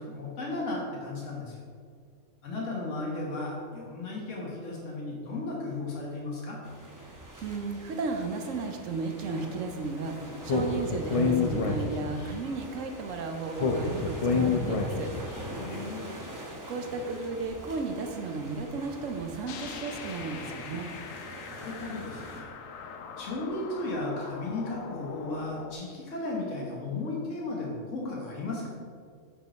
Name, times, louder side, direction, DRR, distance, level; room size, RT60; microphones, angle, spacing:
voice 1, 0.0-1.6 2.4-6.6 15.6-16.0 21.4-22.5 23.2-28.8, left 2 dB, 70° left, -3 dB, 1.8 m, -35 dB
sound 1, 6.6-22.4, right 1 dB, 15° right, 1.1 m, -44 dB
voice 2, 7.4-15.1 16.7-20.9, right 4 dB, 75° right, 5 dB, 1.2 m, -34 dB
Speech, 10.5-12.3 13.6-15.3, left 4 dB, 45° left, 0.4 m, -27 dB
sound 2, 19.5-25.7, left 5 dB, 85° left, 1.1 m, -43 dB
8.6 x 5.3 x 4.5 m, 2.1 s
omnidirectional pair, 1.3 m